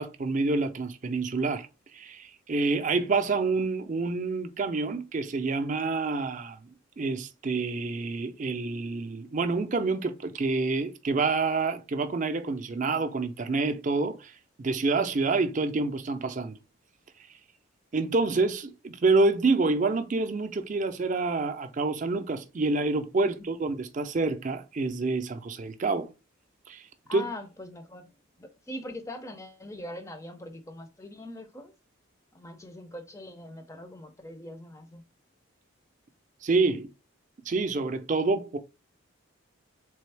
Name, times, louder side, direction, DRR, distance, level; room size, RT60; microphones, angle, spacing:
voice 1, 0.0-1.7 1.9-6.7 7.0-14.3 14.6-16.6 17.9-26.1 26.7-26.8 27.1-27.2 36.4-36.9 37.5-38.6, right 3 dB, 35° right, 0.4 m, -27 dB
voice 2, 27.1-28.1 28.4-31.7 32.3-35.0, left 1 dB, 15° left, 0.4 m, -42 dB
3.8 x 3.4 x 3.3 m
head